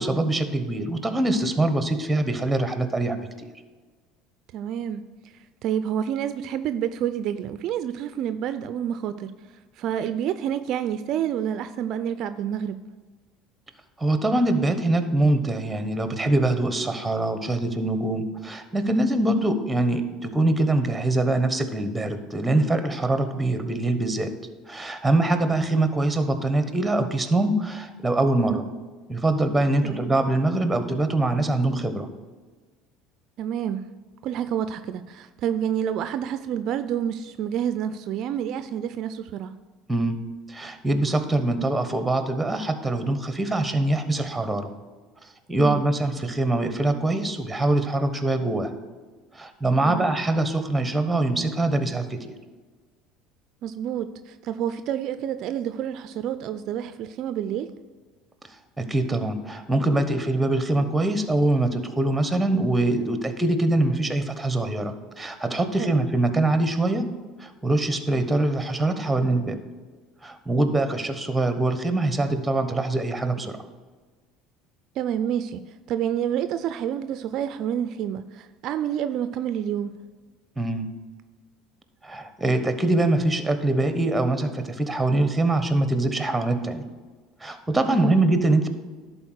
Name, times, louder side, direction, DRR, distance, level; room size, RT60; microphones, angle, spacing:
voice 1, 0.0-3.2 14.0-24.3 24.7-28.6 29.1-32.1 39.9-40.2 40.5-44.7 45.5-48.7 49.3-52.2 58.8-67.0 67.4-69.6 70.2-73.6 80.6-80.9 82.0-86.8 87.4-88.7, right 2 dB, 10° right, 9 dB, 1.1 m, -23 dB
voice 2, 4.5-5.1 5.6-9.3 9.8-12.8 28.4-28.6 29.8-30.0 33.4-33.9 34.2-39.6 45.6-45.8 49.9-50.1 53.6-57.7 65.8-66.0 75.0-80.0 87.9-88.2, right 9 dB, 60° right, 11 dB, 0.4 m, -28 dB
11.0 x 4.2 x 6.4 m, 1.4 s
supercardioid pair, 85°, 0 cm